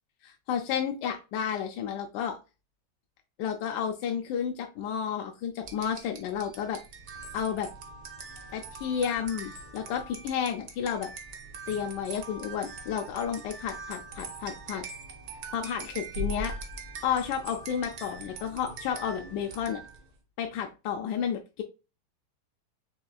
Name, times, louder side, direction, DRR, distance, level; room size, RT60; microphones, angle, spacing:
voice 1, 0.2-2.4 3.4-6.8 7.3-7.7 8.5-11.1 11.7-14.8 15.5-16.5 17.0-19.8 20.4-21.6, left 8 dB, 75° left, 3 dB, 1.1 m, -31 dB
sound 1, 5.6-20.1, right 2 dB, 60° right, 1.3 m, -42 dB
5.4 x 3.1 x 2.3 m, 0.29 s
omnidirectional pair, 2.2 m